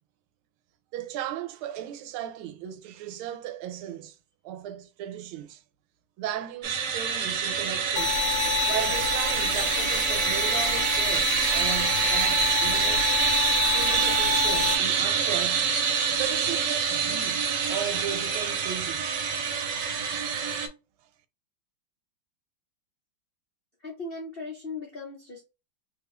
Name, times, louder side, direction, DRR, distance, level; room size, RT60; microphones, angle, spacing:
voice 1, 0.9-4.2 4.4-5.6 6.2-8.2 8.7-13.1 13.7-15.7 16.2-19.2 19.7-19.9, right 11 dB, 85° right, 1.4 m, -36 dB
sound 1, 6.6-20.7, right 6 dB, 65° right, 1.3 m, -26 dB
sound 2, 8.0-14.8, left 6 dB, 70° left, 1.2 m, -28 dB
voice 2, 23.8-25.4, left 3 dB, 85° left, 0.5 m, -38 dB
3.5 x 3.2 x 2.2 m
omnidirectional pair, 2.3 m